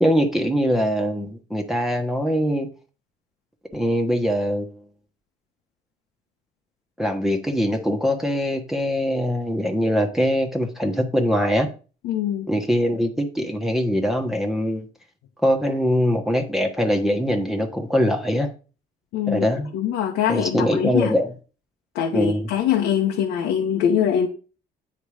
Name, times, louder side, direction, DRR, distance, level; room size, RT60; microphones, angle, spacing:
voice 1, 0.0-2.7 3.7-4.7 7.0-11.7 12.5-14.9 15.4-18.5 19.3-19.7 20.3-21.3 22.1-22.4, equal, ahead, 2 dB, 1.2 m, -22 dB
voice 2, 12.0-12.5 19.1-19.5 19.7-21.2 21.9-24.3, left 9 dB, 90° left, 1 dB, 1.2 m, -23 dB
8.6 x 4.6 x 4.9 m, 0.35 s
cardioid pair, 110°, 17 cm